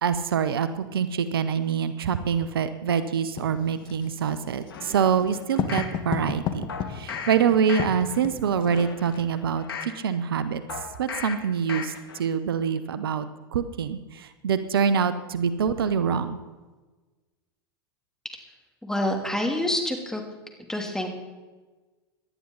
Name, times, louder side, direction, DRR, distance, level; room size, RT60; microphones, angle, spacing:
voice 1, 0.0-10.6 11.0-13.3 13.5-16.4, right 7 dB, 80° right, 12 dB, 0.9 m, -25 dB
Writing, 3.4-9.3, left 8 dB, 40° left, 1.5 m, -34 dB
sound 1, 4.7-6.0 6.7-7.4 7.7-8.2 8.6-10.0 10.7-11.4 11.7-12.2 12.6-12.7, left 6 dB, 80° left, 1.8 m, -37 dB
voice 2, 18.8-20.2 20.7-21.1, left 1 dB, 5° left, 2 dB, 3.0 m, -27 dB
18.5 x 12.0 x 4.0 m, 1.2 s
hypercardioid pair, 95°, 12 cm